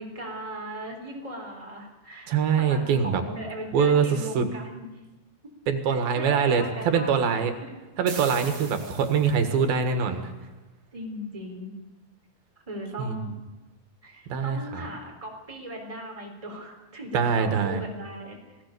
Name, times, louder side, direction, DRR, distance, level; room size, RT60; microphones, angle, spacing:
voice 1, 0.0-4.9 5.9-7.7 10.9-11.7 12.7-13.3 14.0-18.4, right 1 dB, 10° right, 1 dB, 3.8 m, -38 dB
voice 2, 2.3-3.2 3.7-4.5 5.7-7.5 8.0-10.3 13.0-13.2 14.3-14.9 17.1-17.8, right 6 dB, 85° right, 7 dB, 3.5 m, -24 dB
sound 1, 8.1-9.6, right 6 dB, 45° right, 2.4 m, -41 dB
27.5 x 18.0 x 6.8 m, 1.1 s
omnidirectional pair, 4.1 m